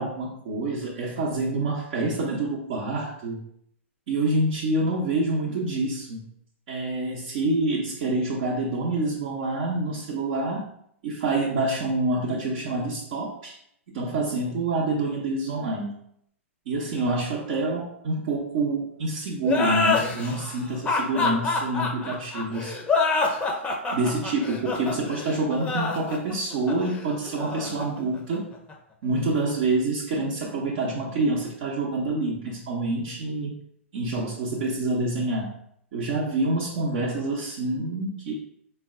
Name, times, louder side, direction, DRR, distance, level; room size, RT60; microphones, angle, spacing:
voice 1, 0.0-3.5 4.1-6.2 6.7-10.7 11.0-13.5 13.9-16.0 16.7-22.7 23.9-28.5 29.0-33.5 33.9-35.6 35.9-38.3, right 2 dB, 55° right, -5 dB, 0.8 m, -27 dB
sound 1, 19.4-28.7, left 4 dB, 15° left, 0.6 m, -26 dB
4.4 x 2.2 x 3.6 m, 0.71 s
hypercardioid pair, 110°, 7 cm